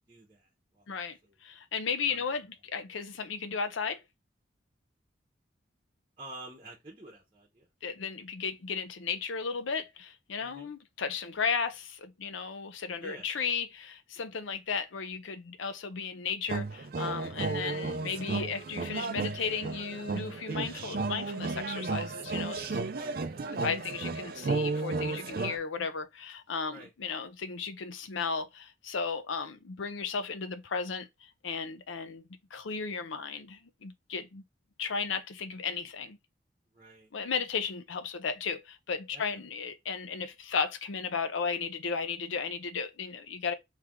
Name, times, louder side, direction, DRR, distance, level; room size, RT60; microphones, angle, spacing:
voice 1, 0.1-0.9 1.2-1.3 2.1-2.2 6.2-7.7 10.4-10.7 13.0-13.3 22.9-23.5 26.6-26.9 36.7-37.1 39.1-39.4, right 2 dB, 25° right, 1.0 m, -49 dB
voice 2, 0.9-4.0 7.8-22.8 23.6-34.4 34.8-36.2 37.1-43.5, left 5 dB, 90° left, 0.6 m, -35 dB
sound 1, 16.5-25.6, right 3 dB, 50° right, 0.4 m, -33 dB
3.4 x 3.3 x 3.6 m
head